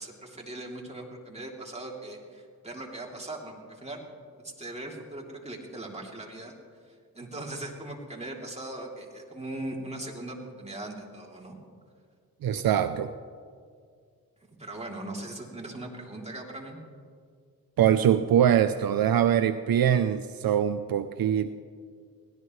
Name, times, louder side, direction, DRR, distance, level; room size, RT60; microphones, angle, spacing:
voice 1, 0.0-4.0 4.4-6.5 6.9-11.6 14.6-16.8, right 1 dB, 15° right, -1 dB, 3.1 m, -39 dB
voice 2, 12.4-13.1 17.8-21.6, right 9 dB, 70° right, 10 dB, 0.6 m, -23 dB
23.5 x 17.0 x 3.2 m, 2.1 s
cardioid pair, 75°, 37 cm